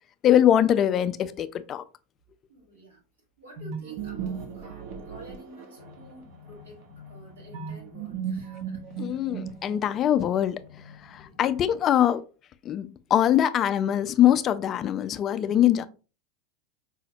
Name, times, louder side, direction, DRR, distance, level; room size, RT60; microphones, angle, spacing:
voice 1, 0.2-1.8 9.0-10.6 11.0-12.2 12.6-15.9, left 10 dB, 40° left, 0.3 m, -22 dB
voice 2, 2.5-3.0 3.4-6.8 7.1-9.3 11.1-11.4, right 1 dB, 85° right, 1.4 m, -50 dB
sound 1, 3.6-6.1 7.5-10.0, right 7 dB, 60° right, 0.8 m, -36 dB
sound 2, 5.8-11.7, left 6 dB, 80° left, 0.7 m, -51 dB
4.9 x 2.1 x 2.7 m
hypercardioid pair, 90°, 0 cm